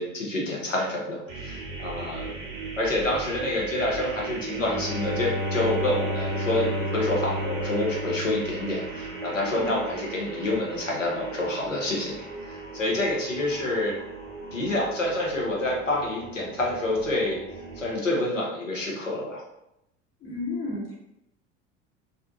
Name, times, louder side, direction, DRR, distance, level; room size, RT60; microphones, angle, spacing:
voice 1, 0.0-2.3 2.8-14.0 14.5-17.4 17.8-19.4, left 1 dB, 90° left, -3 dB, 0.7 m, -28 dB
sound 1, 1.3-17.9, right 3 dB, 85° right, 0.6 m, -38 dB
Bowed string instrument, 4.6-9.3, equal, 5° right, 0.6 m, -31 dB
voice 2, 20.2-20.9, left 2 dB, 35° left, -4 dB, 0.8 m, -32 dB
2.5 x 2.1 x 2.4 m, 0.85 s
figure-of-eight pair, 80°, 37 cm